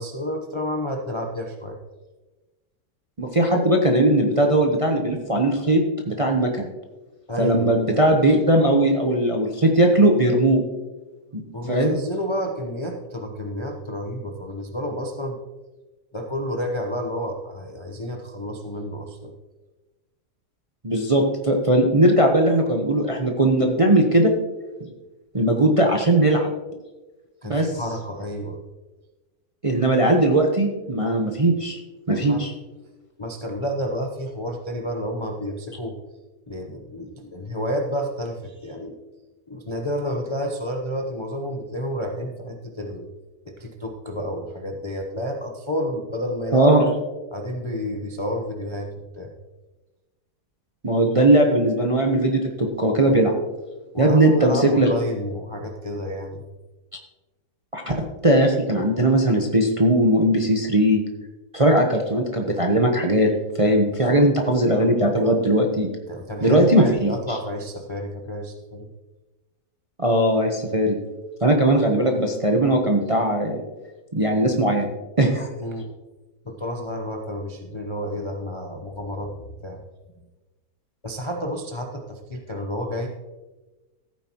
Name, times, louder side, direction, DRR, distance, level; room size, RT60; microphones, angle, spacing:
voice 1, 0.0-1.8 7.3-7.7 11.5-15.4 16.1-19.3 27.4-28.6 32.1-32.4 33.2-36.0 36.5-38.9 39.5-43.1 43.5-46.7 47.3-49.3 53.9-56.4 64.0-64.3 66.1-68.9 75.6-75.9 76.4-79.8 81.0-83.1, equal, 30° left, 1 dB, 0.6 m, -30 dB
voice 2, 3.2-5.8 6.1-6.7 7.4-10.6 11.3-11.4 11.7-12.0 20.8-24.3 25.3-26.5 27.4-27.7 29.6-31.8 32.1-32.5 46.5-46.8 50.8-53.3 54.0-54.9 57.7-61.0 61.5-63.3 63.6-65.9 66.4-67.2 70.0-71.0 71.4-73.6 74.1-74.9 75.2-75.5, right 1 dB, 25° right, 2 dB, 0.7 m, -19 dB
15.0 x 9.0 x 3.0 m, 1.2 s
omnidirectional pair, 1.9 m